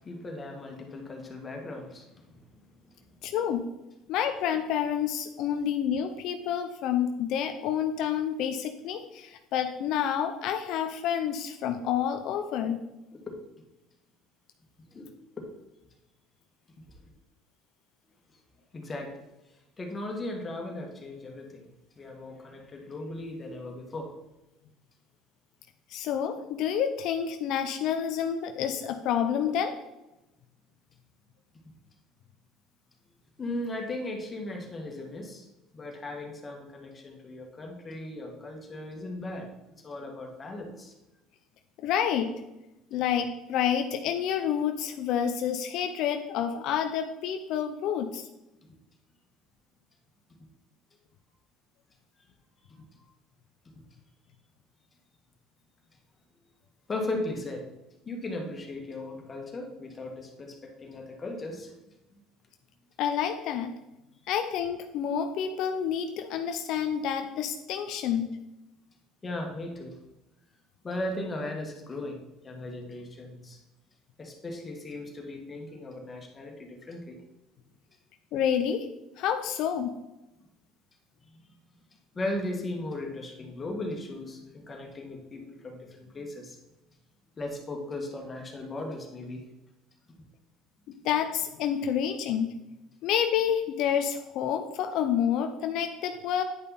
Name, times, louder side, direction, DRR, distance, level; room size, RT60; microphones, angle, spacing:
voice 1, 0.0-2.4 13.1-13.3 14.9-15.1 15.4-15.5 16.9-17.0 18.7-19.1 19.8-21.7 22.0-24.1 33.4-35.5 35.7-39.5 39.8-40.9 48.7-48.8 52.7-53.1 56.9-57.7 58.0-61.7 69.2-70.0 70.8-73.6 74.2-77.2 81.3-81.5 82.1-86.6 87.4-89.4, left 2 dB, 25° left, 2 dB, 1.9 m, -37 dB
voice 2, 3.2-3.7 4.1-12.8 25.9-29.7 41.8-42.3 42.9-48.3 63.0-63.7 64.3-68.4 78.3-78.9 79.2-79.9 90.9-92.5 93.0-96.4, left 9 dB, 65° left, 6 dB, 0.6 m, -29 dB
9.6 x 5.4 x 4.2 m, 0.96 s
supercardioid pair, 100°, 0 cm